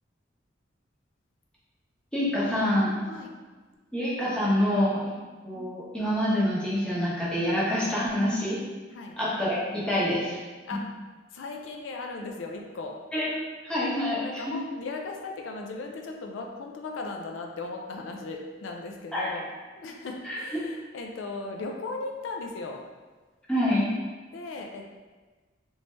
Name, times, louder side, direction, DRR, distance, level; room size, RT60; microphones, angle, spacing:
voice 1, 2.1-2.9 3.9-5.0 5.4-8.6 9.2-10.4 13.1-13.3 13.6-14.6 19.1-19.3 20.2-20.4 23.5-23.9, left 1 dB, 5° left, -8 dB, 0.8 m, -26 dB
voice 2, 11.3-12.9 14.2-19.4 19.8-22.8 24.3-24.9, left 3 dB, 85° left, 2 dB, 0.4 m, -37 dB
3.1 x 2.7 x 3.3 m, 1.3 s
head